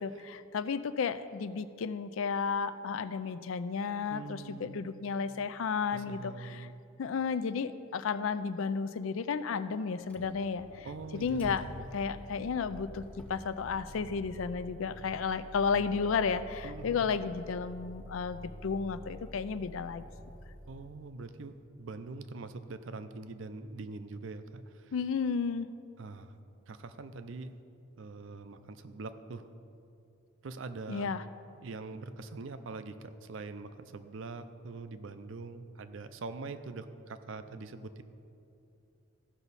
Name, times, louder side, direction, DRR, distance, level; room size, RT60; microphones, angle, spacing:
voice 1, 0.0-6.7 7.0-10.9 11.1-11.6 11.9-13.0 13.3-20.0 24.9-25.7 30.9-31.2, left 5 dB, 75° left, 13 dB, 0.4 m, -33 dB
voice 2, 4.1-5.0 5.9-6.7 10.8-11.9 16.6-17.1 20.7-21.5 21.8-24.6 26.0-26.3 26.7-27.5 28.0-29.4 30.4-31.1 31.6-38.0, right 3 dB, 65° right, 10 dB, 0.5 m, -43 dB
Motor vehicle (road), 10.0-21.2, equal, 5° left, 0.8 m, -48 dB
15.0 x 5.8 x 4.1 m, 2.6 s
head